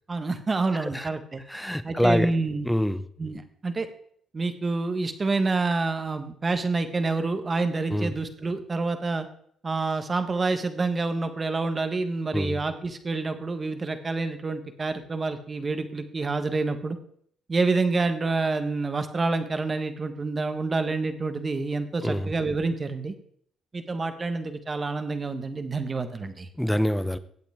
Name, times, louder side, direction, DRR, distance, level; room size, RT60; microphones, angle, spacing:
voice 1, 0.1-1.4 1.8-2.7 3.2-3.9 4.3-9.3 9.6-17.0 17.5-23.1 23.7-26.5, right 3 dB, 30° right, 8 dB, 1.5 m, -28 dB
voice 2, 1.5-2.3 2.6-3.0 7.9-8.1 12.3-12.6 22.0-22.3 26.6-27.2, equal, 5° left, 14 dB, 0.7 m, -25 dB
16.0 x 8.2 x 3.6 m, 0.64 s
cardioid pair, 90°, 0 cm